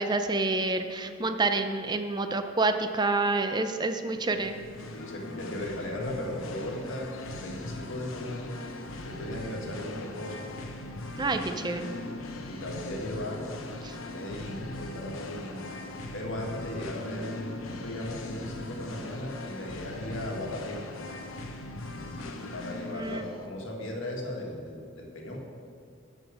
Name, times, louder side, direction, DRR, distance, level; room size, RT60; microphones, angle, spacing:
voice 1, 0.0-4.6 11.2-11.9 13.8-13.9 22.9-23.2, right 3 dB, 20° right, 7 dB, 0.5 m, -28 dB
Singing, 4.3-23.5, left 2 dB, 85° left, 0.9 m, -40 dB
voice 2, 4.9-8.5 9.0-10.5 11.2-11.4 11.7-12.1 12.5-13.5 14.0-15.6 16.1-20.8 22.5-25.4, left 1 dB, 70° left, -1 dB, 1.7 m, -37 dB
12.0 x 5.0 x 6.2 m, 2.2 s
head